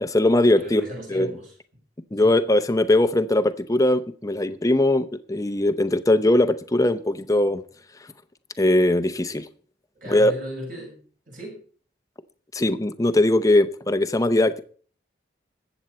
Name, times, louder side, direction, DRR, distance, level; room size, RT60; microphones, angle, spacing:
voice 1, 0.0-0.8 1.1-1.3 2.1-7.6 8.6-9.5 10.1-10.3 12.5-14.6, left 1 dB, 20° left, 0.7 m, -20 dB
voice 2, 0.5-1.5 2.2-2.4 10.0-11.0 11.3-11.6, right 1 dB, 45° right, 7.1 m, -36 dB
21.5 x 8.1 x 4.2 m
head